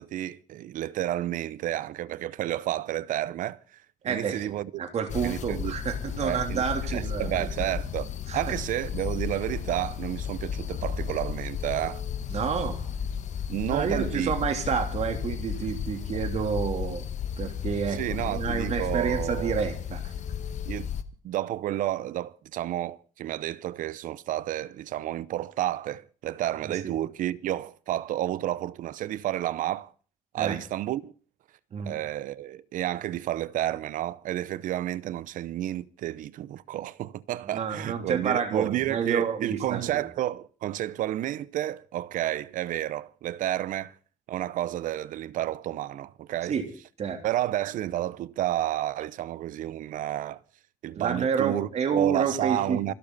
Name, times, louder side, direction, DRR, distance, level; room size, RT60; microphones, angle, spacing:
voice 1, 0.0-4.8 5.2-5.7 6.2-6.6 6.9-12.0 13.5-14.3 17.9-19.6 20.7-20.9 21.2-29.9 30.3-31.1 31.8-44.0 44.3-46.5 47.2-50.4 50.8-52.9, right 13 dB, 85° right, 0.8 m, -31 dB
voice 2, 4.0-4.4 4.8-7.7 8.3-8.5 12.3-12.9 13.7-17.0 17.4-20.1 26.6-26.9 30.4-30.6 31.7-32.0 37.4-40.0 46.4-46.7 47.0-47.2 50.9-52.9, right 6 dB, 55° right, 3.3 m, -29 dB
sound 1, 5.1-21.0, left 7 dB, 65° left, 1.3 m, -33 dB
26.0 x 12.0 x 4.1 m
cardioid pair, 120°, 13 cm